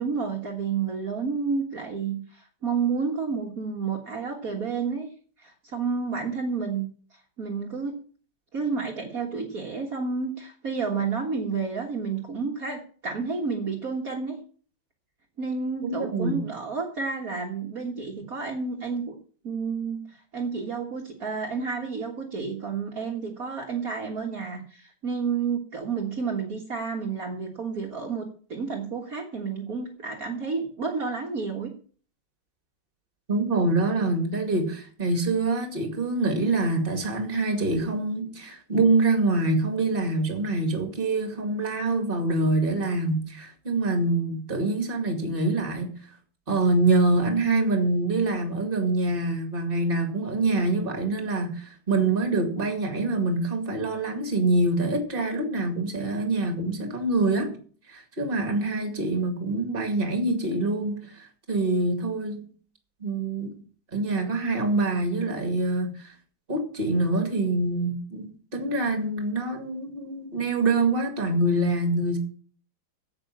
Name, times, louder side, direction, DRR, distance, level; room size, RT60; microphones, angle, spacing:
voice 1, 0.0-5.1 5.4-8.0 8.5-14.4 15.4-19.2 19.4-31.7, right 5 dB, 50° right, 2.0 m, -30 dB
voice 2, 15.8-16.4 33.3-46.0 46.5-57.6 57.9-62.5 63.0-63.6 63.9-66.1 66.5-72.2, right 2 dB, 30° right, 2.3 m, -25 dB
9.0 x 8.1 x 8.5 m
omnidirectional pair, 2.1 m